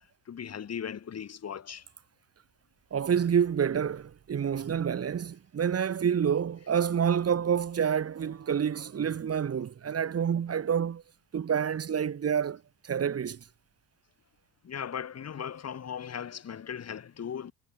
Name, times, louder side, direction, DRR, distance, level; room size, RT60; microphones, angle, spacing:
voice 1, 0.0-1.9 14.6-17.5, left 8 dB, 40° left, 6.0 m, -38 dB
voice 2, 2.9-11.0 11.3-13.4, right 8 dB, 40° right, 3.4 m, -28 dB
cardioid pair, 120°, 37 cm